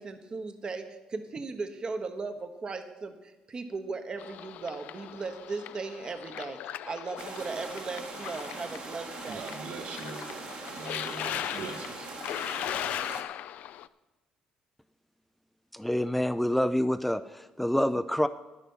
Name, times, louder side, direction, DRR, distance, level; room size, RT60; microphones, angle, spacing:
voice 1, 0.0-9.5, right 4 dB, 35° right, 8 dB, 1.0 m, -37 dB
sound 1, 4.2-13.9, left 12 dB, 75° left, 0.4 m, -39 dB
sound 2, 7.2-13.2, right 4 dB, 50° right, 1.5 m, -42 dB
voice 2, 9.2-12.1, right 4 dB, 70° right, 3 dB, 1.9 m, -42 dB
voice 3, 15.7-18.3, left 1 dB, 5° left, 11 dB, 0.4 m, -27 dB
11.0 x 9.9 x 5.5 m, 1.1 s
cardioid pair, 110°, 3 cm